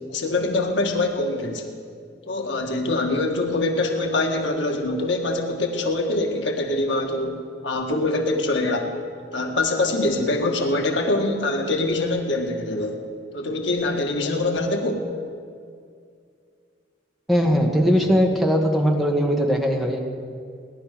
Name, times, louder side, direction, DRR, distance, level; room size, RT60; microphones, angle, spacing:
voice 1, 0.1-1.7 2.3-8.9 9.3-13.0 13.3-15.1, left 2 dB, 80° left, 2 dB, 1.8 m, -24 dB
voice 2, 17.3-20.0, equal, ahead, 1 dB, 1.5 m, -20 dB
18.0 x 11.0 x 6.7 m, 2.3 s
head